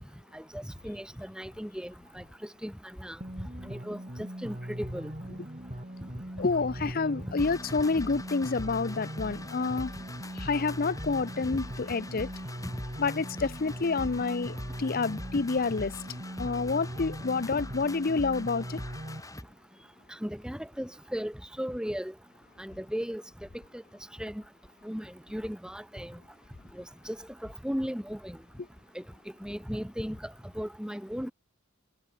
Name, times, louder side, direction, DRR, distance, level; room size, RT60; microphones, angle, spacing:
voice 1, 0.3-2.2 2.6-2.7 3.0-3.2 3.7-4.0 4.4-5.1 20.2-21.3 21.6-22.1 22.6-23.2 23.7-23.8 24.2-24.4 24.8-26.2 26.8-27.2 27.6-28.4 28.9-29.0 29.4-30.2 30.6-31.3, equal, 5° right, 4.5 m, -36 dB
sound 1, 3.2-19.2, equal, 35° right, 3.6 m, -40 dB
voice 2, 6.4-9.9 10.4-12.3 13.0-15.9 16.4-18.8, left 4 dB, 45° left, 0.6 m, -28 dB
sound 2, 7.4-19.4, left 1 dB, 15° left, 5.3 m, -43 dB
head